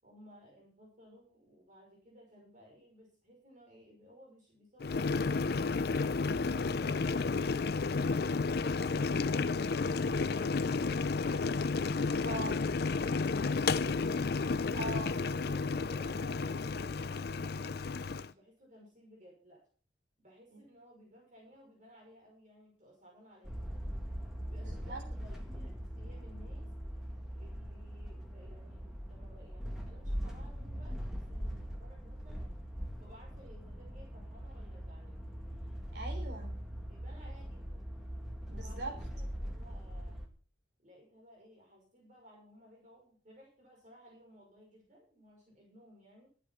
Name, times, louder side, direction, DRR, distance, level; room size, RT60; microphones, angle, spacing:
voice 1, 0.0-5.8 15.4-19.6 20.2-23.7 24.5-26.7 27.3-32.6 33.0-35.3 36.9-37.9 38.5-40.3 40.8-46.3, equal, 40° right, -2 dB, 5.5 m, -58 dB
Boiling, 4.8-18.3, left 4 dB, 55° left, 0.5 m, -32 dB
voice 2, 12.2-12.6 14.7-15.2 20.5-20.6 24.6-25.0 35.9-36.6 38.5-39.0, right 2 dB, 65° right, 3 dB, 3.6 m, -41 dB
sound 1, 23.4-40.3, equal, ahead, 2.0 m, -41 dB
12.5 x 8.6 x 5.7 m, 0.41 s
head